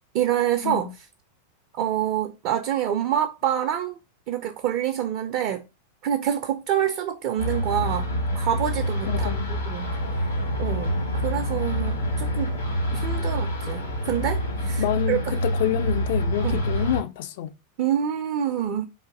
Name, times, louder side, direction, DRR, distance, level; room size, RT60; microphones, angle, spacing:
voice 1, 0.1-0.9 1.7-4.0 4.3-5.6 6.0-9.3 9.7-10.3 10.6-12.5 12.9-15.2 16.4-16.6 17.8-18.9, right 10 dB, 45° right, 0.4 m, -27 dB
sound 1, 7.4-17.0, equal, 70° left, 1.1 m, -27 dB
voice 2, 9.1-9.5 14.8-17.5, left 13 dB, 50° left, 0.3 m, -28 dB
sound 2, 9.8-14.9, equal, 85° left, 0.7 m, -41 dB
3.6 x 2.5 x 3.7 m
figure-of-eight pair, 90°, 0 cm